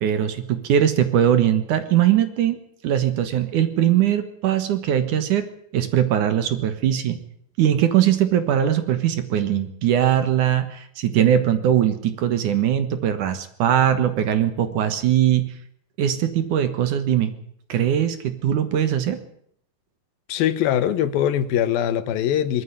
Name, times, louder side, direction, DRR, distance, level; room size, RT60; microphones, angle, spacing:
voice 1, 0.0-5.5 5.7-7.2 7.6-15.5 16.0-17.3 17.7-19.2, right 10 dB, 65° right, 10 dB, 2.6 m, -21 dB
voice 2, 20.3-22.6, left 10 dB, 80° left, 13 dB, 2.8 m, -22 dB
21.0 x 13.0 x 9.8 m, 0.68 s
omnidirectional pair, 4.3 m